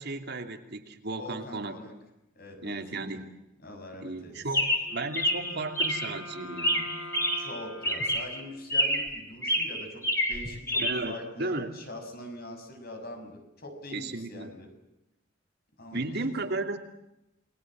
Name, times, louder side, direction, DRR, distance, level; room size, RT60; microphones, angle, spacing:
voice 1, 0.0-1.8 2.6-3.3 4.0-6.9 10.8-11.7 13.9-14.5 15.9-16.8, right 2 dB, 55° right, 5 dB, 2.8 m, -34 dB
voice 2, 1.2-1.9 2.3-3.2 3.6-4.5 7.3-14.7 15.8-16.2, left 1 dB, 50° left, 5 dB, 6.5 m, -43 dB
Chirp tweet, 4.5-6.2 6.6-7.6 7.8-8.4 8.7-9.2 9.4-10.9, equal, 15° left, 4.9 m, -28 dB
Wind instrument woodwind instrument, 4.8-9.1, left 1 dB, 85° left, 6.0 m, -45 dB
29.5 x 21.0 x 7.6 m, 0.90 s
head